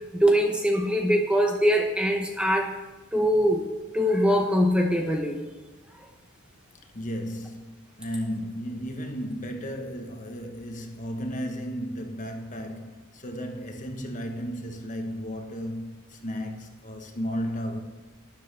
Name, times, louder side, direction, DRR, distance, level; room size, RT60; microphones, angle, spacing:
voice 1, 0.1-2.8 3.1-3.7 3.9-5.4, equal, 5° right, 0.9 m, -22 dB
voice 2, 6.9-17.8, equal, 35° left, 1.2 m, -34 dB
12.0 x 10.5 x 3.5 m
head